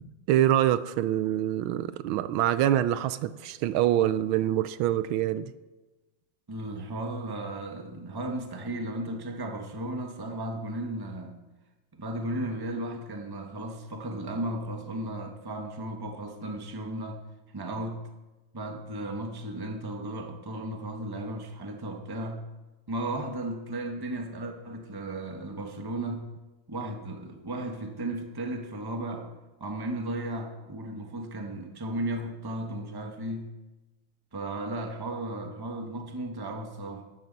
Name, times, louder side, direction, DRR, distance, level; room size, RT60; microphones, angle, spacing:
voice 1, 0.3-5.5, right 12 dB, 80° right, 14 dB, 1.4 m, -25 dB
voice 2, 6.5-11.4 12.0-17.2 17.5-18.0 18.5-22.5 22.9-26.3 26.7-29.3 29.6-33.5 34.3-37.0, right 1 dB, 15° right, 3 dB, 0.9 m, -35 dB
13.5 x 13.0 x 4.1 m, 1.1 s
omnidirectional pair, 2.3 m